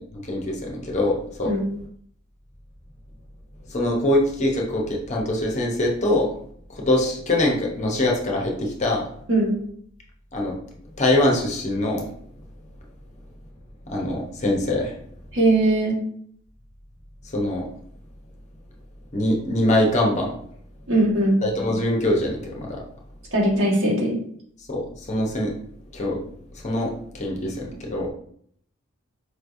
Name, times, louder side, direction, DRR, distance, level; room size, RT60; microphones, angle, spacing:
voice 1, 0.3-1.5 3.7-6.3 6.7-9.1 10.3-10.6 11.0-12.1 13.9-14.9 17.3-17.7 19.1-20.4 21.4-22.8 24.7-25.5 25.9-26.2 26.6-28.1, left 1 dB, 35° left, -1 dB, 0.8 m, -23 dB
voice 2, 15.3-16.0 20.9-21.4 23.3-24.2, right 1 dB, 75° right, -4 dB, 1.5 m, -20 dB
4.7 x 3.1 x 2.6 m, 0.65 s
head